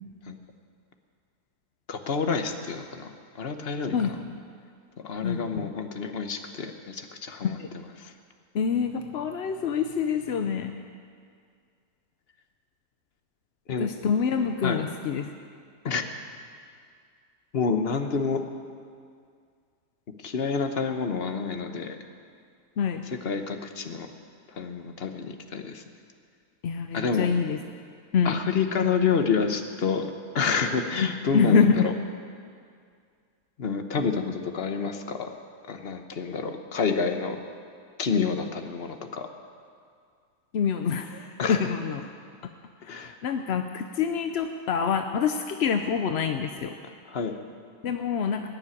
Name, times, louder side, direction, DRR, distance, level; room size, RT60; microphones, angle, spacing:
voice 1, 1.9-4.1 5.0-8.1 13.7-13.9 14.6-14.8 15.8-16.0 17.5-18.4 20.2-22.0 23.2-24.1 24.5-25.8 26.9-27.3 28.2-30.1 30.3-31.9 33.6-35.3 35.7-37.4 38.0-39.3 41.4-41.6 42.9-43.1 47.1-47.3, left 5 dB, 40° left, 6 dB, 1.1 m, -28 dB
voice 2, 5.2-5.7 7.6-7.7 8.5-10.7 13.8-15.3 22.8-23.0 26.6-27.6 28.1-28.5 31.0-31.9 40.5-42.1 42.8-46.7 47.8-48.4, left 6 dB, 60° left, 6 dB, 0.7 m, -26 dB
19.0 x 7.2 x 9.8 m, 2.2 s
omnidirectional pair, 1.7 m